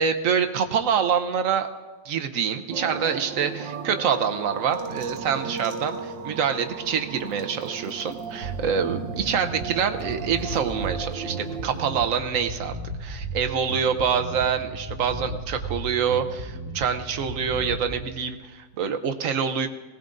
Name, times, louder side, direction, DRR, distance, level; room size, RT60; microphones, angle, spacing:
voice 1, 0.0-1.7 2.0-19.7, right 7 dB, 60° right, 7 dB, 0.9 m, -26 dB
sound 1, 2.7-12.0, right 5 dB, 85° right, 1.5 m, -35 dB
Bass guitar, 8.4-18.0, right 1 dB, 40° right, 3.3 m, -35 dB
19.0 x 17.5 x 2.6 m, 1.2 s
omnidirectional pair, 2.0 m